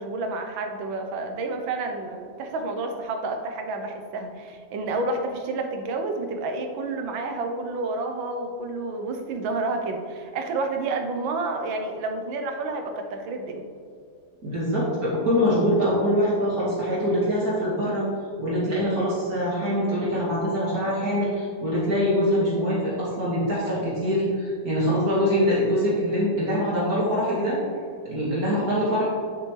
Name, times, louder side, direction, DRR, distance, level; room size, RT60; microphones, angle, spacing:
voice 1, 0.0-13.7, right 3 dB, 85° right, 4 dB, 1.7 m, -30 dB
voice 2, 14.4-18.1 18.4-27.6 28.0-29.1, equal, 50° right, -8 dB, 2.2 m, -24 dB
9.7 x 7.0 x 3.2 m, 2.3 s
omnidirectional pair, 2.1 m